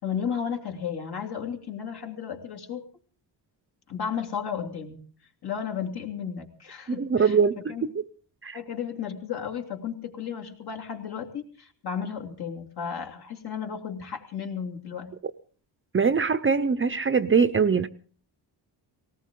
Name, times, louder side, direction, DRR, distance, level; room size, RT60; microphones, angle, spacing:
voice 1, 0.0-2.8 3.9-5.0 5.4-7.4 7.7-7.8 8.5-15.2, left 7 dB, 60° left, 3.0 m, -33 dB
voice 2, 6.9-7.9 8.4-8.6 15.9-17.9, right 5 dB, 30° right, 0.7 m, -22 dB
19.0 x 18.5 x 3.8 m
cardioid pair, 120°, 44 cm